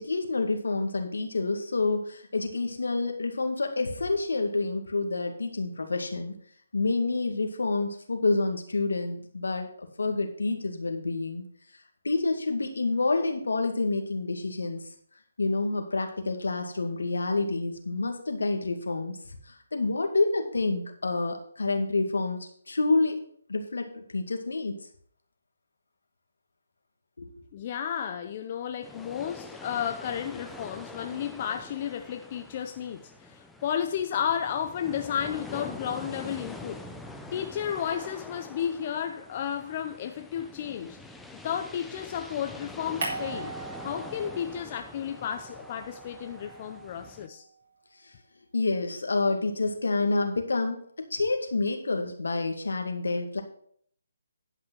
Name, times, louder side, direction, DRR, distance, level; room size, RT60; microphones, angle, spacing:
voice 1, 0.0-6.3 6.7-11.4 12.0-14.8 15.4-19.2 19.5-23.2 23.5-24.7 27.2-27.3 48.5-53.4, left 3 dB, 80° left, 5 dB, 2.1 m, -28 dB
voice 2, 27.5-36.8 37.3-41.0 41.4-43.5 43.8-47.4, left 9 dB, 35° left, 6 dB, 0.7 m, -32 dB
sound 1, 28.8-47.3, left 2 dB, 5° left, 0.7 m, -45 dB
sound 2, 43.0-44.7 45.0-47.4, right 3 dB, 50° right, 3.9 m, -40 dB
11.0 x 5.6 x 6.3 m, 0.62 s
hypercardioid pair, 150°, 0 cm